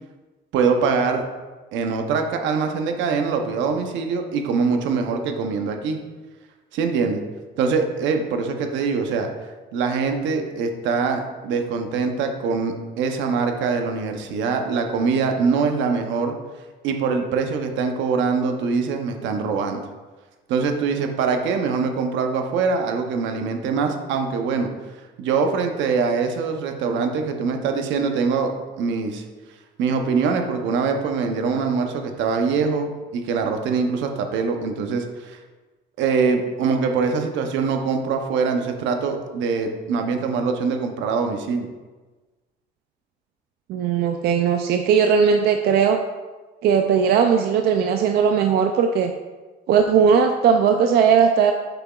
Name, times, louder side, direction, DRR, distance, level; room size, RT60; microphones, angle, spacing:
voice 1, 0.5-1.2 1.7-6.0 6.7-7.2 7.6-9.3 9.7-16.3 16.8-19.8 20.5-24.7 25.2-29.2 29.8-35.4 36.0-41.7, right 5 dB, 80° right, 5 dB, 0.8 m, -23 dB
voice 2, 43.7-46.0 46.6-49.1 49.7-51.5, right 7 dB, 60° right, 5 dB, 0.4 m, -18 dB
6.8 x 5.8 x 2.4 m, 1.3 s
cardioid pair, 150°, 19 cm